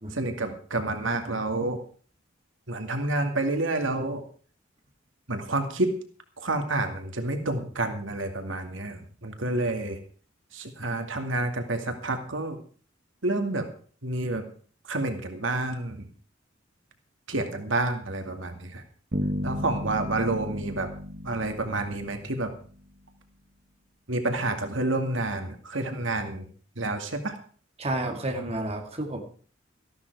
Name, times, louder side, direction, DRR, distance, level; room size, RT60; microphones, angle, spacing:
voice 1, 0.1-1.8 2.7-4.2 5.3-5.9 6.4-10.0 10.5-12.6 13.2-13.7 14.0-14.4 14.9-16.1 17.3-18.8 19.4-20.9 21.2-22.5 24.1-26.5 26.8-27.4, right 2 dB, 85° right, 6 dB, 2.3 m, -29 dB
sound 1, 19.1-22.8, equal, 55° right, 1.5 m, -34 dB
voice 2, 27.8-29.2, right 1 dB, 35° right, 4 dB, 2.2 m, -30 dB
14.0 x 12.0 x 4.7 m, 0.43 s
head